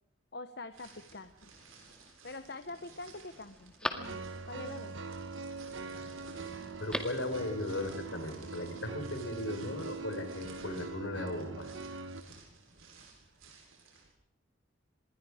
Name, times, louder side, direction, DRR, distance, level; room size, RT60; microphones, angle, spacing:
voice 1, 0.3-1.5 2.2-4.9, left 2 dB, 50° left, 10 dB, 1.0 m, -45 dB
sound 1, 0.7-14.1, right 3 dB, 85° right, 7.6 m, -55 dB
Telephone, 1.5-2.1 2.6-2.7 3.1-4.6 6.6-7.3 7.6-7.7, left 1 dB, 5° left, 1.9 m, -41 dB
sound 2, 4.0-12.2, right 3 dB, 65° right, 1.3 m, -43 dB
voice 2, 6.8-11.7, left 1 dB, 70° left, 7 dB, 4.9 m, -37 dB
26.5 x 21.5 x 5.0 m, 0.75 s
head